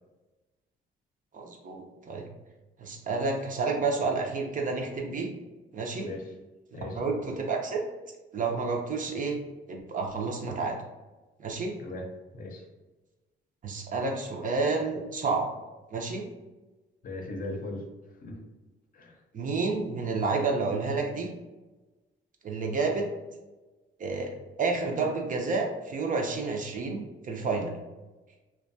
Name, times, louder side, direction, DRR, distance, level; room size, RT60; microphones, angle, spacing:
voice 1, 1.3-2.3 2.8-5.3 5.7-6.1 6.8-7.8 8.3-9.4 9.7-10.8 11.4-11.7 13.6-15.5 15.9-16.3 19.3-21.3 22.4-23.1 24.0-24.3 24.6-27.7, right 4 dB, 40° right, 1 dB, 0.5 m, -30 dB
voice 2, 6.0-6.3 6.7-7.0 11.8-12.1 12.3-12.6 17.0-17.9 18.2-18.4 18.9-19.2, left 2 dB, 45° left, 1 dB, 0.6 m, -38 dB
2.5 x 2.2 x 2.6 m, 1.1 s
cardioid pair, 90°, 20 cm